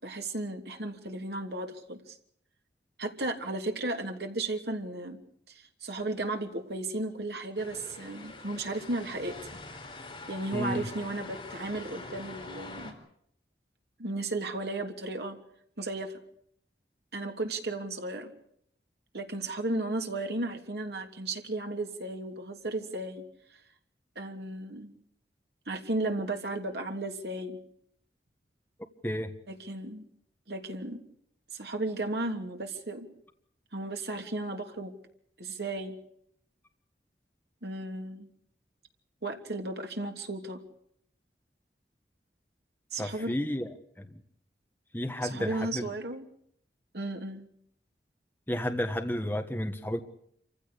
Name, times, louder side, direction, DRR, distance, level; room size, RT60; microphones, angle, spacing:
voice 1, 0.0-2.2 3.0-5.2 5.5-9.3 10.3-12.9 14.0-15.4 15.8-16.1 17.1-18.3 19.1-23.2 24.1-24.9 25.7-27.6 29.5-30.1 30.5-31.0 31.5-33.1 33.7-34.9 35.4-36.0 37.6-38.3 39.2-40.6 42.9-43.3 45.2-46.3 46.9-47.5, right 2 dB, 70° right, 4 dB, 3.1 m, -34 dB
sound 1, 7.6-12.9, left 2 dB, 25° left, 4.1 m, -44 dB
voice 2, 10.5-10.9 29.0-29.3 43.0-43.7 44.0-44.2 44.9-45.9 48.5-50.0, left 1 dB, 10° left, 5 dB, 1.3 m, -32 dB
27.5 x 15.5 x 8.4 m, 0.69 s
head